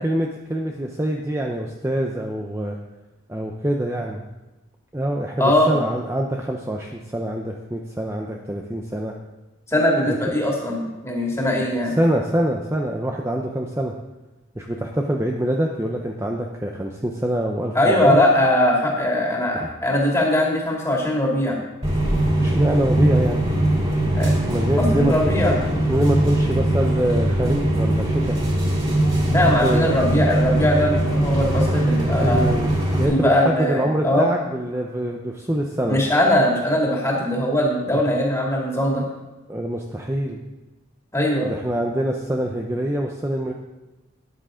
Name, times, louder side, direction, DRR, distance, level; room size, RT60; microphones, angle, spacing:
voice 1, 0.0-2.8 3.3-4.2 4.9-9.1 10.1-10.3 10.7-10.8 11.9-14.0 14.6-18.2 19.5-19.7 22.4-23.5 24.5-25.6 25.9-28.4 29.4-29.9 32.2-32.7 33.0-36.0 37.9-38.0 39.5-40.4 41.4-43.5, right 1 dB, 15° right, 1 dB, 0.6 m, -25 dB
voice 2, 5.4-5.8 9.7-12.0 17.7-21.6 24.1-24.3 24.8-25.6 29.3-32.4 33.1-34.3 35.9-39.0 41.1-41.5, left 1 dB, 15° left, -2 dB, 2.3 m, -20 dB
sound 1, 21.8-33.0, right 1 dB, 30° right, 3.2 m, -21 dB
13.5 x 10.0 x 3.8 m, 1.1 s
head